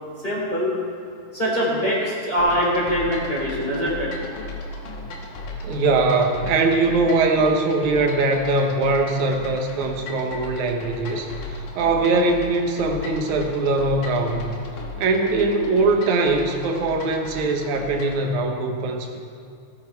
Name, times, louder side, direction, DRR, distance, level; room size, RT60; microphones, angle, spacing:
voice 1, 0.2-0.7 1.3-4.1, equal, 15° left, -6 dB, 3.6 m, -23 dB
sound 1, 2.4-18.2, left 2 dB, 75° left, 3.0 m, -36 dB
voice 2, 5.6-14.5 15.0-19.2, right 3 dB, 70° right, 3 dB, 2.4 m, -21 dB
17.5 x 9.2 x 4.5 m, 2.4 s
omnidirectional pair, 3.7 m